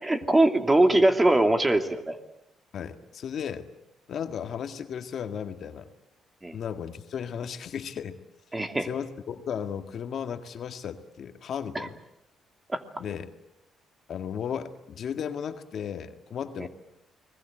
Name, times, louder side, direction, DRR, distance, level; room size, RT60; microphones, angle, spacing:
voice 1, 0.0-2.2 6.4-6.6 8.5-8.9 11.7-11.9 12.7-12.8 16.6-16.7, right 2 dB, 15° right, 6 dB, 2.6 m, -22 dB
voice 2, 2.7-3.7 4.1-5.9 6.5-8.2 8.8-12.0 13.0-13.3 14.1-16.7, left 8 dB, 60° left, 7 dB, 1.9 m, -35 dB
30.0 x 21.0 x 7.9 m, 0.83 s
cardioid pair, 90°, 0 cm